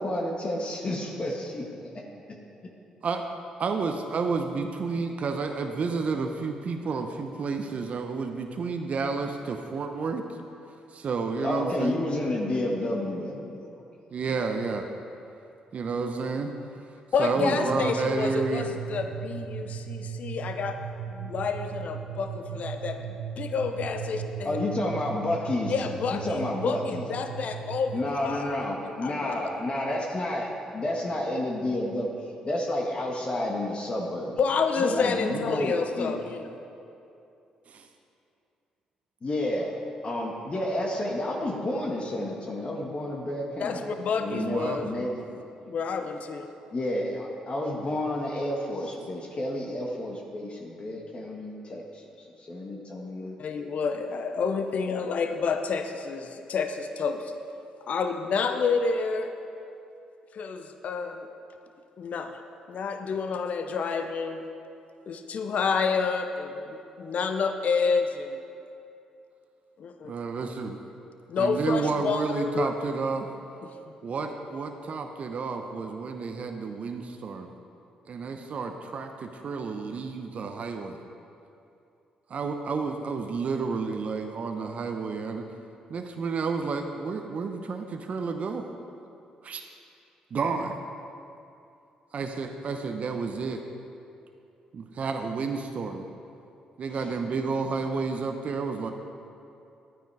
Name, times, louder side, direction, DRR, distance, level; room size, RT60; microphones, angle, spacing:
voice 1, 0.0-2.0 11.4-13.8 17.4-17.8 24.4-25.7 26.1-27.1 27.9-34.3 34.8-36.2 39.2-43.9 44.2-45.2 46.7-53.6 96.9-97.1, left 1 dB, 40° left, -1 dB, 1.7 m, -30 dB
voice 2, 3.6-10.3 10.9-12.0 14.1-14.9 15.7-16.5 17.2-18.8 37.7-37.9 44.3-44.9 70.0-70.8 71.4-73.3 74.0-77.5 78.1-81.0 82.3-85.4 85.9-88.7 89.4-89.6 90.3-90.8 92.1-93.6 94.7-96.0 96.8-98.9, right 4 dB, 55° right, 5 dB, 0.8 m, -30 dB
voice 3, 17.1-20.8 21.1-23.0 23.4-24.6 25.7-28.0 28.2-28.5 29.0-29.3 34.4-36.5 43.6-44.9 45.7-46.5 53.4-57.3 57.9-59.3 60.3-61.3 62.0-62.4 62.7-64.4 65.1-68.4 69.8-70.1 71.3-72.7 73.6-73.7, left 5 dB, 60° left, 7 dB, 0.7 m, -29 dB
sound 1, 17.7-28.1, right 8 dB, 90° right, 1.1 m, -38 dB
12.0 x 9.3 x 4.9 m, 2.6 s
hypercardioid pair, 50°, 3 cm